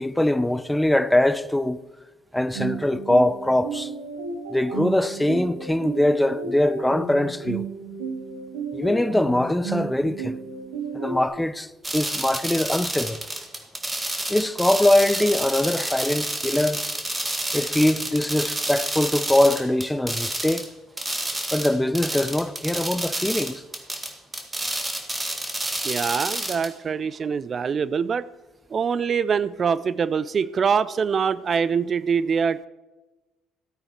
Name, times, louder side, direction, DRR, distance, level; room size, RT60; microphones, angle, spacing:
voice 1, 0.0-1.8 2.3-3.9 4.5-7.6 8.7-10.4 10.9-13.2 14.3-16.8 17.5-20.6 21.5-23.6, left 1 dB, 10° left, 0.6 m, -22 dB
sound 1, 2.5-11.3, right 4 dB, 85° right, 2.8 m, -33 dB
sound 2, 11.8-20.7 21.0-26.7, right 1 dB, 15° right, 2.0 m, -29 dB
voice 2, 25.8-28.3 28.7-32.7, right 6 dB, 45° right, 0.3 m, -24 dB
14.5 x 8.8 x 4.5 m
hypercardioid pair, 60°, 0 cm